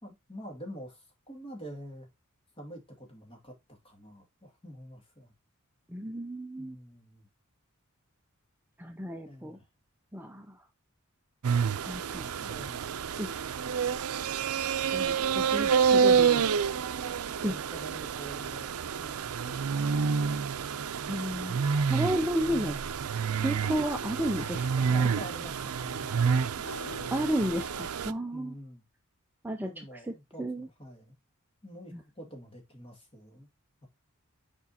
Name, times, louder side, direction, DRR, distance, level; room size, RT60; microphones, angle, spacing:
voice 1, 0.0-2.1 2.6-5.3 6.6-7.3 9.3-9.7 12.4-12.9 17.4-18.7 24.9-27.0 28.3-28.8 29.6-31.1 31.6-33.5 33.8-33.9, right 1 dB, 25° left, 2.4 m, -47 dB
voice 2, 5.9-6.8 8.8-9.6 10.1-10.6 11.8-12.3 13.2-13.3 14.9-16.4 17.4-17.5 21.1-21.6 21.9-22.8 23.4-25.1 27.1-28.5 29.4-30.7 31.9-32.0, equal, 10° right, 0.5 m, -33 dB
sound 1, 11.4-28.1, right 6 dB, 90° right, 0.5 m, -28 dB
sound 2, 22.6-28.0, left 1 dB, 60° left, 3.5 m, -47 dB
7.1 x 5.1 x 2.8 m
head